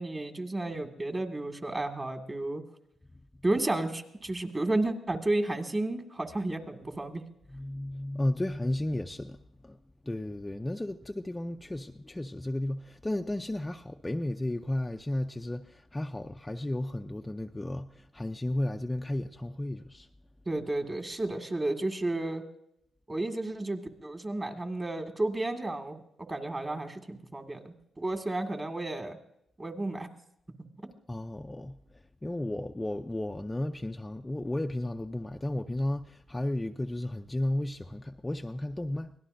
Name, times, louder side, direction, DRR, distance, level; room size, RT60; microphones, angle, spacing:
voice 1, 0.0-2.6 3.4-7.2 20.5-22.4 23.1-26.0 26.3-29.2 29.6-30.1, right 2 dB, 25° right, 2.0 m, -32 dB
voice 2, 7.5-9.8 10.0-20.1 31.1-39.1, left 1 dB, 15° left, 0.5 m, -33 dB
24.0 x 17.5 x 2.6 m
cardioid pair, 85°, 0 cm